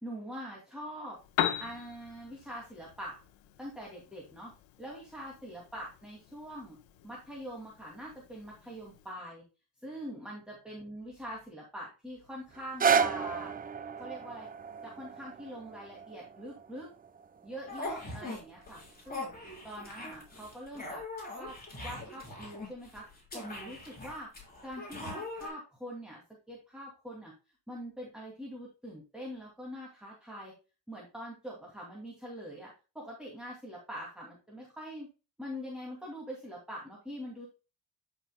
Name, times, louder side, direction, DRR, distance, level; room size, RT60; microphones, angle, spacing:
voice 1, 0.0-1.2 1.6-3.1 3.6-4.5 4.8-6.8 7.0-9.4 9.8-13.5 13.9-14.5 14.8-16.9 17.4-19.3 19.6-21.0 21.3-21.6 21.8-23.1 23.3-24.3 24.6-26.2 26.5-27.3 27.7-30.5 30.9-35.1 35.4-37.5, equal, ahead, -4 dB, 2.4 m, -43 dB
Piano, 1.1-9.1, left 11 dB, 90° left, 1.0 m, -40 dB
sound 1, 12.5-18.6 19.3-19.4, right 6 dB, 20° right, 0.4 m, -33 dB
sound 2, 17.7-18.4 18.7-25.5, left 2 dB, 20° left, 3.8 m, -42 dB
11.0 x 5.9 x 2.2 m, 0.31 s
cardioid pair, 110°, 44 cm